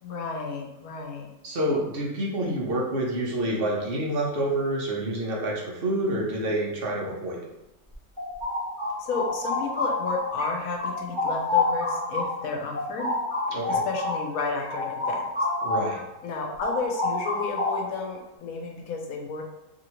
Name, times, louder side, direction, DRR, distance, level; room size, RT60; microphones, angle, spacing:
voice 1, 0.0-1.3 9.0-13.1 13.7-15.5 16.2-19.4, left 4 dB, 85° left, 1 dB, 1.1 m, -32 dB
voice 2, 1.4-7.4 13.5-13.8 15.6-16.0, right 1 dB, 55° right, -2 dB, 0.7 m, -28 dB
sound 1, 7.9-10.5 10.8-16.0 16.3-18.0, left 2 dB, 15° right, 1.3 m, -28 dB
2.9 x 2.7 x 2.9 m, 0.91 s
omnidirectional pair, 1.5 m